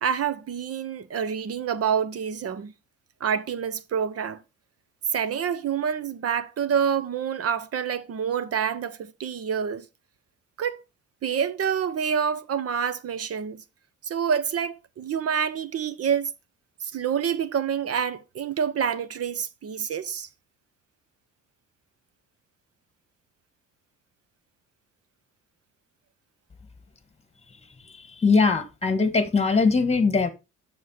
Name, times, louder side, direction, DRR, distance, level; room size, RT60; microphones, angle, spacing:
voice 1, 0.0-2.7 3.2-4.4 5.1-9.9 10.6-10.8 11.2-13.6 14.0-16.3 16.8-20.3, right 7 dB, 50° right, 0.9 m, -27 dB
voice 2, 28.2-30.3, left 4 dB, 20° left, 1.5 m, -21 dB
7.3 x 6.5 x 4.2 m
cardioid pair, 90°, 30 cm